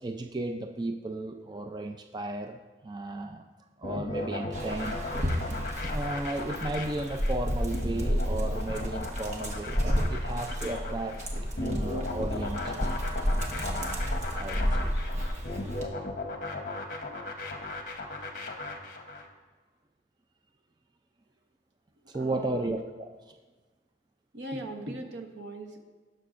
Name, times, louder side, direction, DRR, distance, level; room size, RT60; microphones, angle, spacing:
voice 1, 0.0-3.4 3.8-5.3 5.8-11.2 11.6-12.7 13.3-14.9 22.1-23.3, right 2 dB, 25° right, 5 dB, 0.4 m, -35 dB
sound 1, 3.8-19.3, left 2 dB, 45° left, 1.0 m, -36 dB
Dog, 4.5-15.9, equal, 40° right, 1.2 m, -31 dB
voice 2, 22.1-22.7 24.3-25.8, right 1 dB, 85° right, 4 dB, 1.1 m, -39 dB
18.0 x 6.5 x 2.5 m, 1.3 s
head